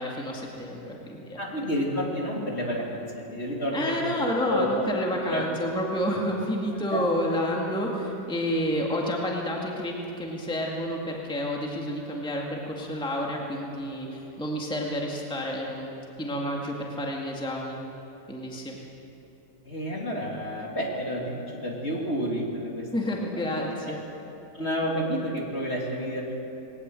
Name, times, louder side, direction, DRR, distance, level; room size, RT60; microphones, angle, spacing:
voice 1, 0.0-1.4 3.7-15.9 16.2-17.8 18.3-18.8 22.9-24.0, equal, 5° left, -1 dB, 2.0 m, -29 dB
voice 2, 1.4-3.8 4.5-5.0 5.3-5.4 6.9-7.1 19.7-22.9 24.5-26.3, equal, 40° left, -2 dB, 3.0 m, -30 dB
20.0 x 18.5 x 7.7 m, 2.9 s
omnidirectional pair, 1.8 m